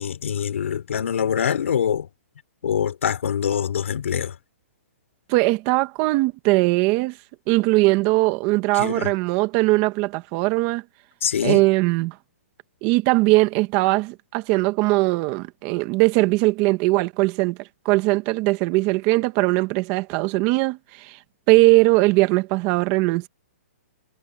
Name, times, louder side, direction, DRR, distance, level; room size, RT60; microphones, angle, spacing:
voice 1, 0.0-2.1 2.6-4.3 8.8-9.1 11.2-11.6, left 8 dB, 70° left, 4.2 m, -24 dB
voice 2, 5.3-7.2 7.5-10.8 11.4-12.1 12.8-17.6 17.8-21.2 21.5-23.3, right 22 dB, 25° right, 1.5 m, -20 dB
hypercardioid pair, 165°, 7 cm